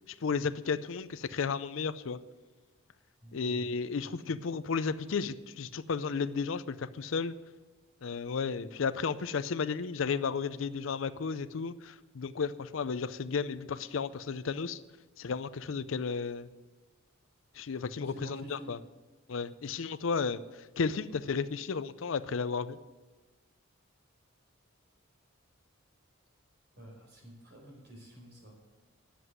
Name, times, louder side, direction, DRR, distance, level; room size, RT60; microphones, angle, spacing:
voice 1, 0.1-2.2 3.3-7.3 8.0-14.8 15.2-16.5 17.5-18.8 19.3-22.8, left 5 dB, 70° left, 14 dB, 0.5 m, -33 dB
voice 2, 3.2-3.6 18.1-18.7 26.8-28.5, right 1 dB, 55° right, 0 dB, 4.5 m, -49 dB
10.0 x 7.7 x 9.4 m, 1.2 s
head